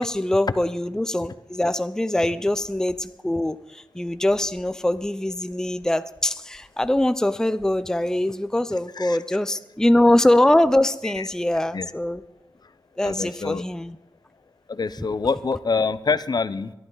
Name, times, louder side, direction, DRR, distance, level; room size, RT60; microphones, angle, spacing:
voice 1, 0.0-12.2 13.0-14.0, left 1 dB, 5° left, 12 dB, 0.6 m, -22 dB
voice 2, 13.0-13.6 14.7-16.7, left 4 dB, 55° left, 15 dB, 0.7 m, -26 dB
22.5 x 11.5 x 4.0 m, 0.98 s
wide cardioid pair, 65°, 8 cm